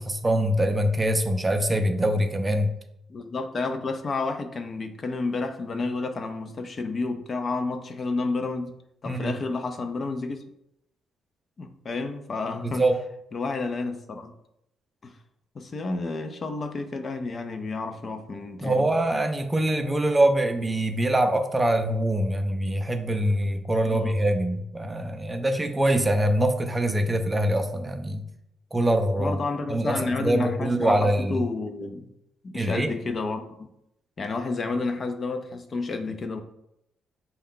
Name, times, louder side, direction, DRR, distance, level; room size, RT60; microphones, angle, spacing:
voice 1, 0.0-2.7 9.0-9.3 12.6-13.0 18.6-28.2 28.7-29.4 29.7-31.4 32.5-32.9, right 1 dB, 20° right, 6 dB, 0.5 m, -24 dB
voice 2, 3.1-8.7 9.0-10.4 11.6-12.9 13.3-14.3 15.0-15.2 15.5-18.9 23.9-24.1 29.2-32.1 32.4-33.4 34.2-36.4, left 3 dB, 40° left, 7 dB, 0.4 m, -30 dB
5.2 x 2.3 x 3.7 m, 0.81 s
cardioid pair, 90°, 0 cm